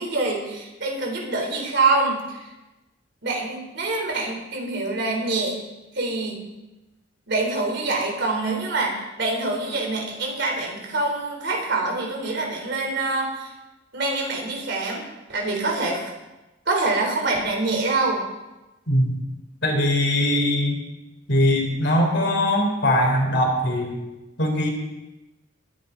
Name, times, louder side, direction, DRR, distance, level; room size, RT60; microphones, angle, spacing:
voice 1, 0.0-2.5 3.2-5.5 5.9-6.4 7.3-13.5 13.9-15.0 15.3-16.1 16.7-18.2, right 3 dB, 60° right, 0 dB, 4.0 m, -25 dB
voice 2, 19.6-20.8 21.3-24.0 24.4-24.7, left 1 dB, 60° left, 1 dB, 3.5 m, -21 dB
21.5 x 10.0 x 4.1 m, 1.0 s
head